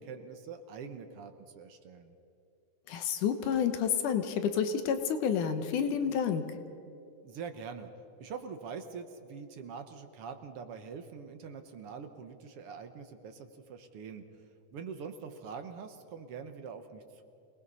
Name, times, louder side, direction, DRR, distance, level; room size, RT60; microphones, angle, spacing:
voice 1, 0.0-2.1 7.2-7.9 8.2-14.2 14.7-17.2, right 6 dB, 60° right, 7 dB, 1.6 m, -44 dB
voice 2, 2.9-6.4, left 7 dB, 80° left, 8 dB, 2.6 m, -29 dB
26.0 x 19.0 x 5.5 m, 2.6 s
omnidirectional pair, 3.6 m